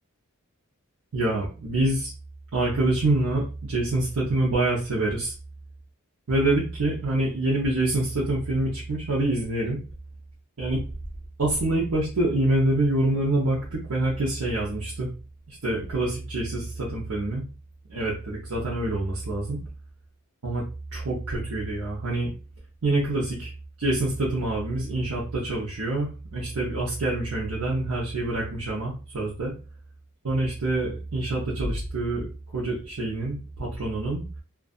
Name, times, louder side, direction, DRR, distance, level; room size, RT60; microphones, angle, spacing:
voice 1, 1.1-2.1 2.5-5.3 6.3-9.8 10.6-10.8 11.4-15.1 15.5-17.4 17.9-19.6 20.4-20.6 20.9-22.3 22.8-23.5 23.8-29.5 30.2-34.3, right 2 dB, 75° right, -6 dB, 0.7 m, -26 dB
2.6 x 2.3 x 2.3 m, 0.33 s
head